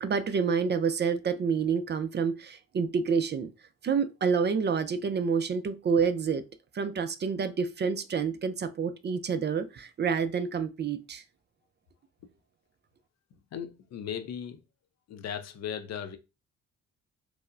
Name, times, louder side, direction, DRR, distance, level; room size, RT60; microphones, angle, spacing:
voice 1, 0.0-3.5 3.8-6.4 6.7-11.2, right 6 dB, 35° right, 0.4 m, -28 dB
voice 2, 13.5-14.6 15.1-16.2, left 8 dB, 60° left, 0.5 m, -37 dB
4.5 x 2.1 x 2.5 m
cardioid pair, 90°, 30 cm